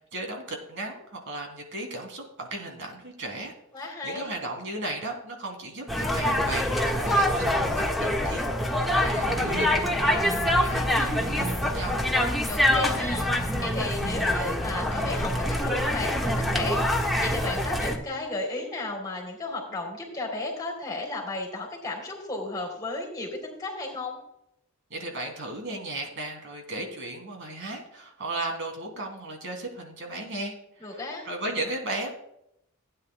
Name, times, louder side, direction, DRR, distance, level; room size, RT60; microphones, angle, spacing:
voice 1, 0.1-3.5 3.8-7.7 8.0-12.0 24.9-32.1, right 2 dB, 60° right, 2 dB, 2.7 m, -35 dB
voice 2, 3.7-4.3 12.5-24.2 30.8-31.3, left 2 dB, 20° left, 1 dB, 3.4 m, -34 dB
sound 1, 5.9-18.0, left 1 dB, ahead, 1.5 m, -25 dB
17.0 x 9.7 x 2.3 m, 0.76 s
head